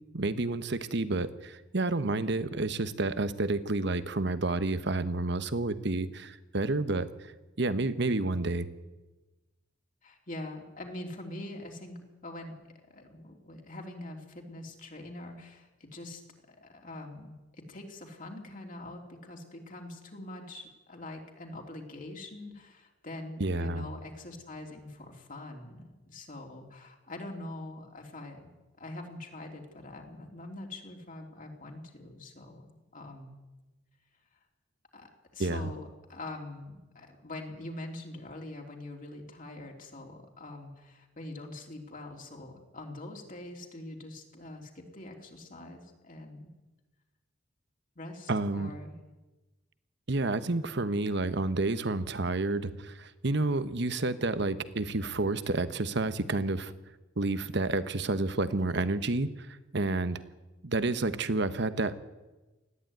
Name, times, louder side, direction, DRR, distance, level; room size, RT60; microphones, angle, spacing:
voice 1, 0.1-7.3 7.6-8.7 23.4-23.9 35.4-35.7 48.3-48.7 50.1-56.7 57.2-60.2 60.6-62.0, right 2 dB, 60° right, 13 dB, 1.2 m, -30 dB
voice 2, 10.0-12.6 12.9-16.2 16.5-28.5 28.8-33.4 34.9-46.5 47.9-49.1, left 2 dB, 45° left, 1 dB, 3.3 m, -44 dB
19.5 x 14.5 x 9.4 m, 1.1 s
head